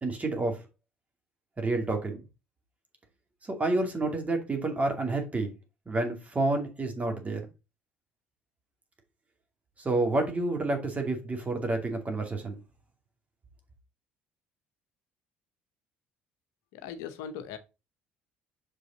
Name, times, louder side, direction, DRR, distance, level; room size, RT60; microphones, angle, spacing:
voice 1, 0.0-0.6 1.6-2.2 3.4-5.5 5.9-7.4 9.8-12.6, right 2 dB, 25° right, 2.4 m, -29 dB
voice 2, 16.7-17.6, left 7 dB, 65° left, 0.8 m, -39 dB
6.4 x 5.3 x 3.9 m
figure-of-eight pair, 55°, 6 cm